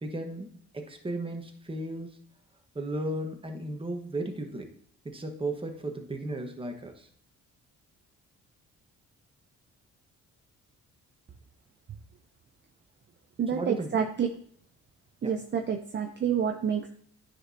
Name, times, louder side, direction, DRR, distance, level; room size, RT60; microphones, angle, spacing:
voice 1, 0.0-2.2 2.7-4.7 5.0-7.1 13.5-14.1 15.2-15.4, right 1 dB, 15° right, 4 dB, 1.3 m, -35 dB
voice 2, 13.4-14.3 15.2-16.9, right 7 dB, 35° right, 4 dB, 0.7 m, -28 dB
9.8 x 6.2 x 2.8 m, 0.62 s
cardioid pair, 90°, 30 cm